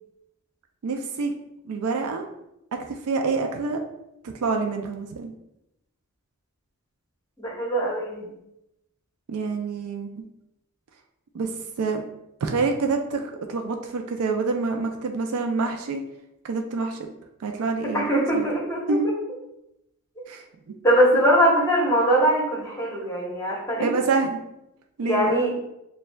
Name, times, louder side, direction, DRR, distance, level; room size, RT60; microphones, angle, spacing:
voice 1, 0.8-1.3 1.6-2.2 2.9-3.8 4.2-5.3 9.3-10.1 11.3-11.5 11.8-12.0 12.4-16.0 16.4-17.0 17.4-18.5 18.9-19.1 20.3-20.4 21.1-21.2 23.8-24.4 25.0-25.4, right 4 dB, 80° right, 4 dB, 0.4 m, -27 dB
voice 2, 7.4-8.3 17.9-19.0 20.8-23.9 25.0-25.5, right 1 dB, 15° left, -3 dB, 0.9 m, -21 dB
6.5 x 2.2 x 2.2 m, 0.86 s
head